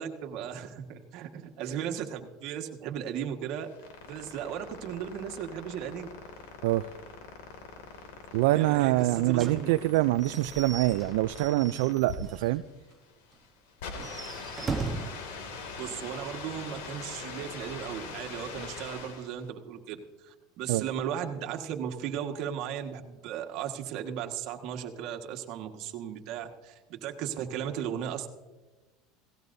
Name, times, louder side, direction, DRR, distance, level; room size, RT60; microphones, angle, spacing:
voice 1, 0.0-3.7 4.0-6.1 8.5-9.7 15.8-28.3, right 9 dB, 60° right, 4 dB, 1.6 m, -36 dB
sound 1, 3.5-19.4, left 4 dB, 80° left, 2.4 m, -43 dB
voice 2, 8.3-12.6 20.7-20.9, right 17 dB, 75° right, 12 dB, 0.4 m, -25 dB
Slam / Squeak / Wood, 9.4-12.6 12.9-13.0 13.3-13.4 13.9-15.2, right 4 dB, 20° right, 1.0 m, -38 dB
17.5 x 17.0 x 2.7 m, 1.1 s
supercardioid pair, 120°, 0 cm